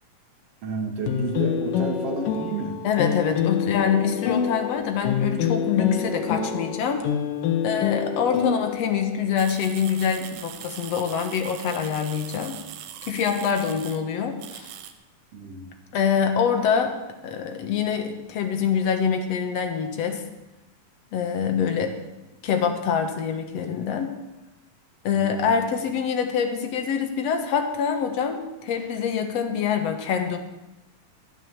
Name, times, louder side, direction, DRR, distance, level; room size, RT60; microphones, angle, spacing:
voice 1, 0.6-2.8 15.3-15.7 21.8-21.9 25.1-25.6, right 3 dB, 50° right, 3 dB, 2.4 m, -31 dB
sound 1, 1.1-9.2, left 8 dB, 90° left, 2.7 m, -26 dB
voice 2, 2.8-7.1 7.6-12.6 13.1-14.7 15.9-16.9 17.2-20.2 21.1-21.9 22.4-24.1 25.0-30.4, left 7 dB, 60° left, 5 dB, 2.3 m, -25 dB
sound 2, 9.4-14.0 14.4-14.9, right 10 dB, 80° right, 2.5 m, -41 dB
13.0 x 9.2 x 7.2 m, 1.0 s
omnidirectional pair, 3.7 m